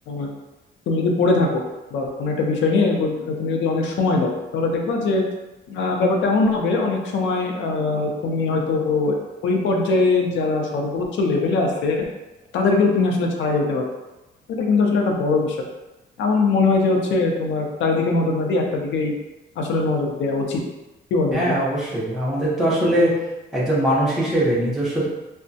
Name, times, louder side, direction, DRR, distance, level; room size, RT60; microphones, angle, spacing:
voice 1, 0.9-1.6 1.9-5.2 5.7-9.1 9.4-12.1 12.5-13.9 14.5-15.6 16.2-19.2 19.6-20.6 21.1-21.6, left 3 dB, 80° left, 2 dB, 0.6 m, -21 dB
voice 2, 21.3-23.1 23.5-25.1, right 1 dB, 5° right, -8 dB, 0.7 m, -21 dB
3.4 x 2.1 x 2.7 m, 1.0 s
cardioid pair, 180°, 19 cm